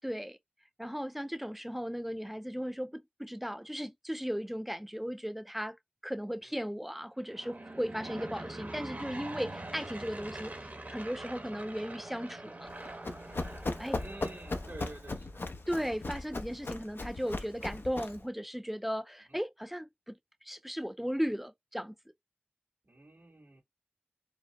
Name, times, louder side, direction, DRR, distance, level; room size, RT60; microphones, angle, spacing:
voice 1, 0.0-0.4 0.8-5.8 6.0-12.7 13.8-14.0 15.7-21.9, equal, 5° right, 0.5 m, -36 dB
Aircraft / Engine, 7.2-15.2, right 2 dB, 50° right, 1.1 m, -44 dB
Run, 12.7-18.3, left 2 dB, 80° left, 0.7 m, -38 dB
voice 2, 13.9-16.0 16.7-17.0 19.2-19.4 21.1-21.2 22.8-23.6, right 2 dB, 85° right, 2.3 m, -51 dB
5.0 x 2.0 x 3.6 m
wide cardioid pair, 60°, 4 cm